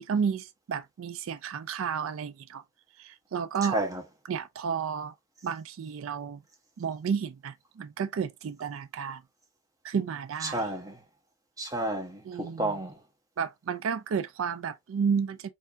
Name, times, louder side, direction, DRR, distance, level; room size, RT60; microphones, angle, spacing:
voice 1, 0.0-2.6 3.0-3.8 4.3-5.1 5.4-6.4 6.8-9.2 9.8-10.6 12.3-12.7 13.4-15.5, right 6 dB, 80° right, 0.4 m, -31 dB
voice 2, 3.6-4.0 10.4-11.0 11.6-13.0, right 1 dB, 15° right, 1.0 m, -31 dB
4.3 x 2.6 x 2.5 m
head